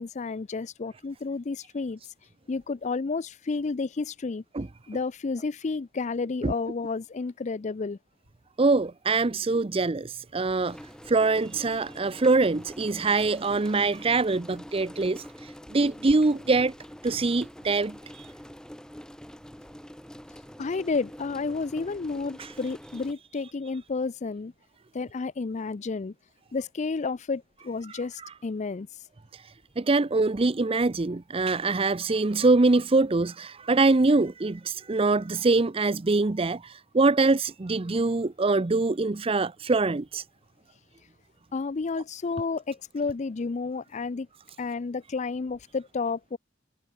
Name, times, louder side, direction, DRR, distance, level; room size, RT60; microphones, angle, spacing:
voice 1, 0.0-2.0 2.5-4.4 4.9-8.0 20.6-24.5 24.9-26.1 26.5-28.9 41.5-44.3 44.6-46.4, left 4 dB, 35° left, 0.4 m, -31 dB
voice 2, 8.6-10.8 11.1-16.7 17.0-18.3 22.4-22.5 27.9-28.3 29.3-40.2, right 3 dB, 30° right, 0.6 m, -24 dB
sound 1, 10.6-23.1, equal, 5° left, 1.5 m, -45 dB
head